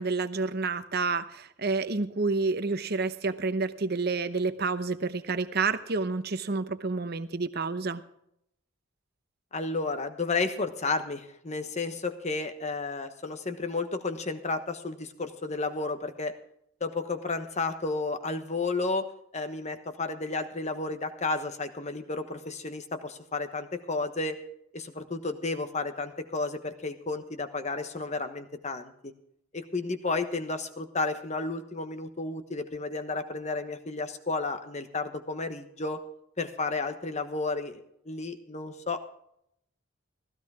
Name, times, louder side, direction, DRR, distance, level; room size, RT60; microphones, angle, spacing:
voice 1, 0.0-8.0, right 4 dB, 50° right, 11 dB, 0.8 m, -29 dB
voice 2, 9.5-16.3 16.8-24.4 24.7-29.1 29.5-36.0 36.4-39.0, left 3 dB, 30° left, 8 dB, 1.2 m, -32 dB
15.5 x 14.5 x 3.6 m, 0.74 s
head